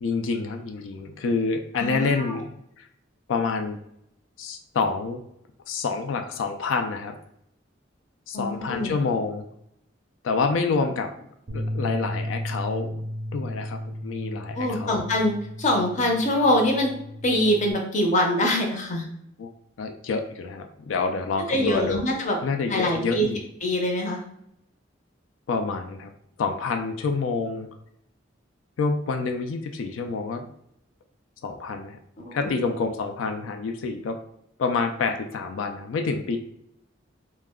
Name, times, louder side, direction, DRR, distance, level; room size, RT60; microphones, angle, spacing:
voice 1, 0.0-2.5 3.3-3.8 4.4-5.2 5.7-7.2 8.3-9.5 10.2-11.1 11.5-13.0 13.3-15.0 19.4-19.5 19.8-22.0 22.4-23.4 25.5-26.1 26.4-27.7 28.8-30.5 31.4-32.0 32.3-34.2 34.6-36.4, left 4 dB, 85° left, 6 dB, 0.4 m, -27 dB
voice 2, 1.8-2.4 8.3-9.0 14.5-16.9 17.2-19.1 21.5-22.4 22.7-23.3 23.6-24.2 32.2-32.6, left 1 dB, 40° left, 1 dB, 0.6 m, -24 dB
Bass guitar, 11.5-17.7, equal, 50° right, 0.4 m, -34 dB
2.3 x 2.1 x 3.5 m, 0.73 s
head